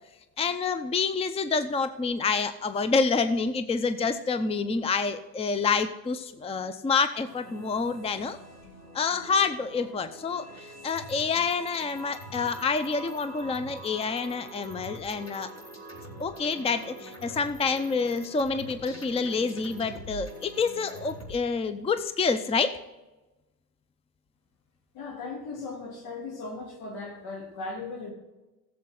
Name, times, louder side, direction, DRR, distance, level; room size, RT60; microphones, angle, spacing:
voice 1, 0.4-8.4 8.9-15.5 16.2-22.7, left 4 dB, 15° left, 11 dB, 0.7 m, -28 dB
sound 1, 7.3-21.3, right 1 dB, 35° left, 4.2 m, -44 dB
voice 2, 24.9-28.1, left 3 dB, 75° left, 0 dB, 3.6 m, -37 dB
16.0 x 7.7 x 4.0 m, 1.1 s
hypercardioid pair, 90°, 47 cm